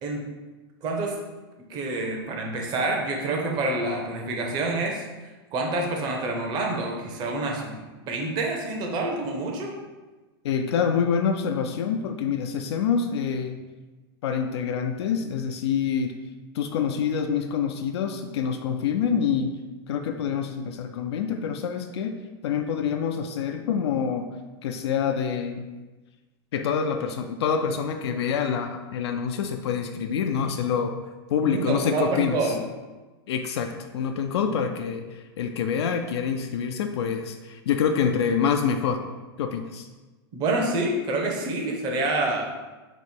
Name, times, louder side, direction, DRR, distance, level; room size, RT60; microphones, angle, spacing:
voice 1, 0.8-1.2 1.7-5.0 5.5-9.8 31.4-32.6 40.3-42.5, right 2 dB, 35° right, 0 dB, 0.8 m, -27 dB
voice 2, 10.4-13.6 14.2-16.2 16.5-19.5 19.9-22.2 22.4-24.3 24.6-25.7 26.5-31.0 31.3-32.5 33.3-39.0 39.4-39.9, left 7 dB, 80° left, 5 dB, 0.4 m, -26 dB
3.1 x 3.1 x 4.3 m, 1.2 s
supercardioid pair, 140°, 14 cm